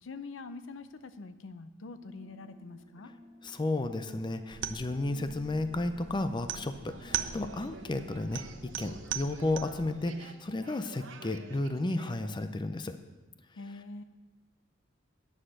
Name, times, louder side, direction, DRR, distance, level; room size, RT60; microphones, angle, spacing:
voice 1, 0.0-3.1 13.6-14.0, left 3 dB, 85° left, 11 dB, 0.6 m, -44 dB
sound 1, 2.0-9.0, left 1 dB, 30° right, 1.0 m, -53 dB
voice 2, 3.4-13.0, left 2 dB, 25° left, 9 dB, 0.5 m, -33 dB
sound 2, 4.5-9.9, right 9 dB, 70° right, 0.6 m, -40 dB
sound 3, 6.5-12.4, right 3 dB, 90° right, 0.9 m, -51 dB
10.0 x 6.6 x 6.2 m, 1.1 s
head